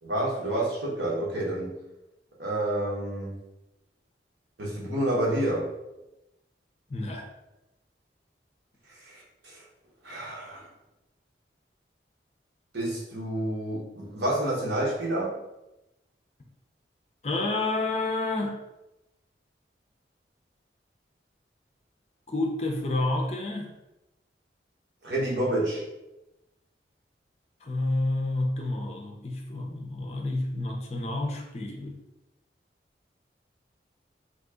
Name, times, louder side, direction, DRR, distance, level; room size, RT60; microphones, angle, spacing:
voice 1, 0.0-1.8 2.4-3.4 4.6-5.6 8.9-9.6 10.0-10.7 12.7-15.4 25.0-25.8, right 1 dB, 75° right, -4 dB, 1.1 m, -29 dB
voice 2, 6.9-7.3 17.2-18.6 22.3-23.7 27.6-32.0, left 2 dB, 35° left, 1 dB, 0.5 m, -29 dB
3.0 x 2.7 x 3.6 m, 0.96 s
head